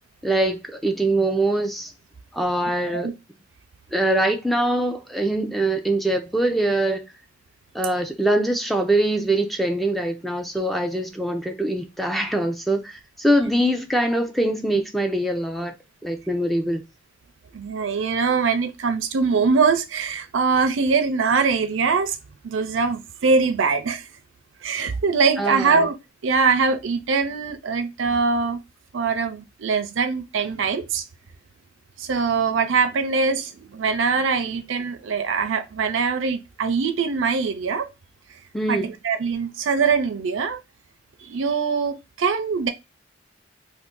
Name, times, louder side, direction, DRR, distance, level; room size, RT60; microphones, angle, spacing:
voice 1, 0.2-1.9 2.3-3.1 3.9-7.0 7.7-15.7 16.0-16.8 25.4-25.9 38.5-38.9, right 1 dB, ahead, 0.5 m, -23 dB
voice 2, 17.5-22.2 22.4-24.1 24.6-26.0 26.2-28.6 28.9-31.0 32.0-37.9 38.7-40.6 41.2-42.7, right 5 dB, 70° right, 0.5 m, -22 dB
2.6 x 2.5 x 3.7 m
head